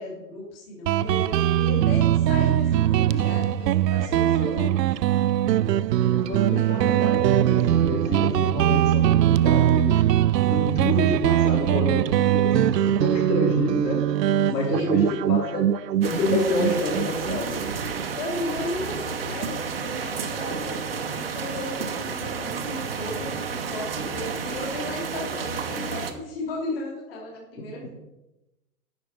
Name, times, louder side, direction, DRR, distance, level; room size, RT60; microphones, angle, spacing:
voice 1, 0.0-5.0 8.0-8.5 10.8-10.9 14.7-15.1 15.5-15.6 18.2-27.9, left 2 dB, 35° left, -2 dB, 2.8 m, -35 dB
Guitar, 0.9-18.1, right 11 dB, 75° right, 0.5 m, -21 dB
voice 2, 6.0-10.0 10.5-14.0 14.5-15.7 16.0-17.6 27.6-27.9, left 1 dB, 90° left, -1 dB, 4.3 m, -28 dB
sound 1, 16.0-26.1, right 6 dB, 35° right, 0.7 m, -31 dB
9.6 x 6.2 x 5.9 m, 0.96 s
hypercardioid pair, 175°, 49 cm